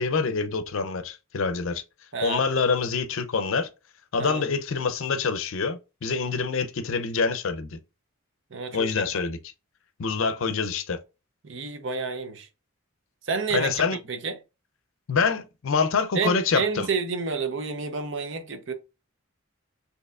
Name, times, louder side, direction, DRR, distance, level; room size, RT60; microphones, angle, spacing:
voice 1, 0.0-1.8 2.2-3.7 4.1-7.8 8.7-9.4 10.0-11.0 13.5-14.0 15.1-16.9, left 5 dB, 70° left, 0.5 m, -26 dB
voice 2, 8.5-8.9 11.4-12.5 13.2-13.8 14.1-14.4 16.1-18.7, right 5 dB, 60° right, 0.7 m, -29 dB
6.4 x 2.8 x 2.4 m
head